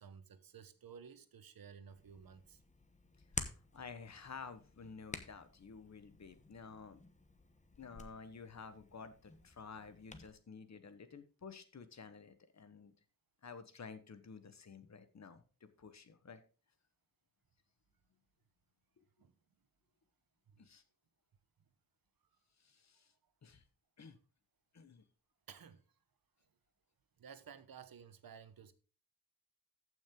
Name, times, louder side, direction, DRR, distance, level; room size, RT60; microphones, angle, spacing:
voice 1, 0.0-2.6 19.2-19.3 20.5-20.7 25.5-25.8 27.2-28.7, right 7 dB, 85° right, 1.1 m, -55 dB
Hands, 1.9-10.3, left 3 dB, 20° left, 1.0 m, -50 dB
voice 2, 3.7-7.0 7.8-12.9 13.4-16.4 20.6-20.8 22.6-23.1 23.4-23.6 24.0-24.2 24.7-25.0, left 5 dB, 50° left, 1.2 m, -52 dB
14.5 x 6.2 x 3.7 m
wide cardioid pair, 165°, 34 cm